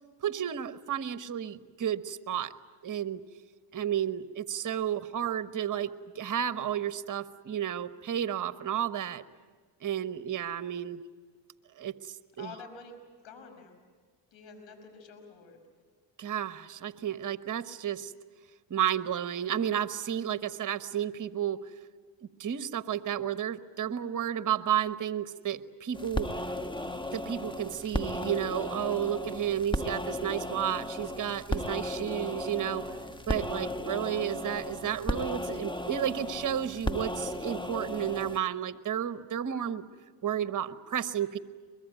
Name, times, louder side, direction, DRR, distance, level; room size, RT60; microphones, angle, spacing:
voice 1, 0.2-2.5 2.8-3.2 3.7-9.2 9.8-11.0 11.8-12.5 16.2-18.1 18.7-21.6 22.2-26.4 27.1-32.8 33.3-39.9 40.2-41.4, right 10 dB, 40° right, 11 dB, 1.2 m, -32 dB
voice 2, 12.4-13.8 14.3-15.6, left 4 dB, 65° left, 6 dB, 5.6 m, -49 dB
sound 1, 25.9-38.4, left 1 dB, 10° left, 1.4 m, -35 dB
23.5 x 22.0 x 9.2 m, 1.5 s
supercardioid pair, 70°, 49 cm